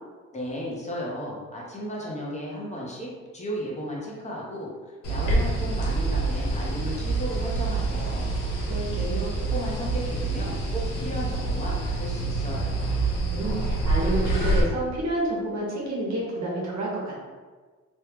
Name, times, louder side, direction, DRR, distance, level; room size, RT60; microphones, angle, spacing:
voice 1, 0.3-8.3 8.9-12.9, equal, 25° left, -4 dB, 0.9 m, -35 dB
sound 1, 5.0-14.6, right 2 dB, 90° left, 0.8 m, -26 dB
voice 2, 8.7-9.2 13.3-17.2, right 1 dB, 65° right, -4 dB, 1.1 m, -29 dB
3.0 x 2.3 x 3.4 m, 1.4 s
cardioid pair, 90°, 30 cm